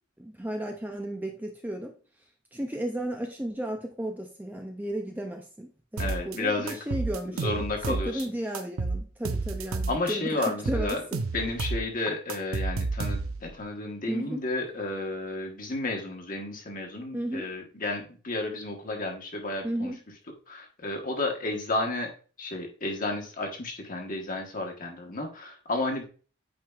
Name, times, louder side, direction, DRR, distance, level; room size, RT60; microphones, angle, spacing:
voice 1, 0.2-1.9 2.5-11.2 14.1-14.4 17.1-17.5 19.6-20.0, right 1 dB, 10° right, 3 dB, 0.4 m, -34 dB
voice 2, 6.0-6.8 7.3-8.2 9.9-11.0 11.3-19.9 20.5-22.1 22.4-26.0, left 2 dB, 40° left, 2 dB, 1.2 m, -32 dB
sound 1, 6.0-6.4 6.7-8.2 8.5-10.1 10.4-13.5, right 3 dB, 80° right, 0.6 m, -31 dB
8.7 x 5.0 x 2.4 m, 0.40 s
head